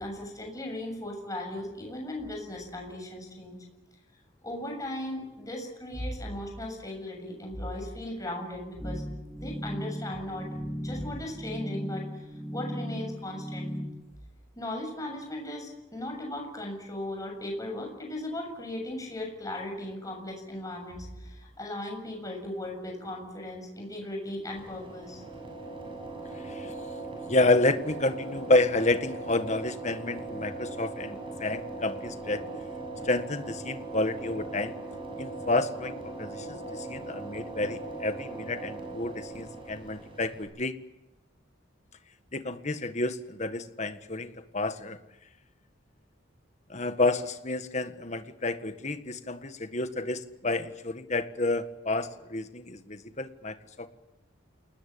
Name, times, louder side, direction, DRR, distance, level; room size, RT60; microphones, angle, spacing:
voice 1, 0.0-3.6 4.4-9.0 9.4-13.7 14.6-25.2, left 1 dB, 20° left, 2 dB, 7.1 m, -37 dB
sound 1, 8.8-13.9, equal, ahead, 3.9 m, -36 dB
sound 2, 24.5-40.4, right 2 dB, 25° right, 7.4 m, -39 dB
voice 2, 26.4-26.7 27.3-32.5 33.0-34.7 35.2-40.8 42.3-45.0 46.7-53.9, left 2 dB, 35° left, 9 dB, 1.7 m, -29 dB
29.0 x 19.5 x 8.7 m, 0.97 s
head